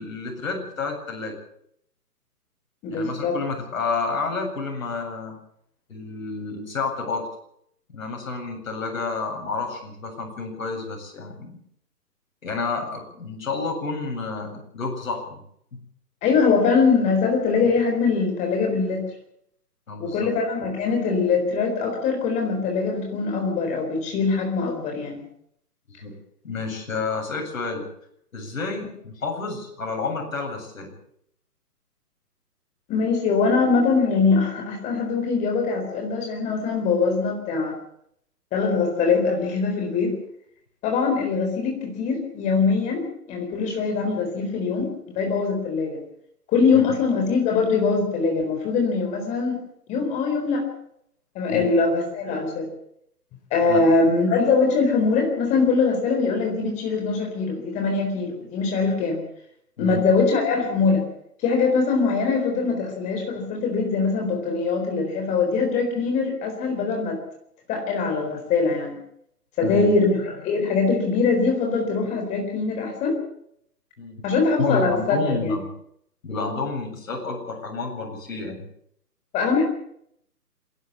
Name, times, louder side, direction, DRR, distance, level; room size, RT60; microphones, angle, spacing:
voice 1, 0.0-1.4 2.9-5.3 5.9-7.3 7.9-11.6 12.4-15.4 15.7-15.8 19.9-20.3 25.9-26.1 26.4-27.9 28.3-30.9 46.7-46.8 51.5-51.7 53.7-53.8 59.8-60.0 69.6-69.9 74.0-74.2 74.6-75.7 76.2-78.7, left 4 dB, 55° left, 2 dB, 7.9 m, -30 dB
voice 2, 2.8-3.4 16.2-19.1 20.0-25.2 32.9-37.7 38.5-40.1 40.8-46.0 46.5-49.6 49.9-50.6 51.3-52.7 53.5-59.2 59.8-61.1 61.4-67.2 67.7-69.0 69.6-73.2 74.2-75.6 79.3-79.6, left 4 dB, 15° left, 2 dB, 4.2 m, -22 dB
27.0 x 11.5 x 8.4 m, 0.71 s
hypercardioid pair, 155°, 48 cm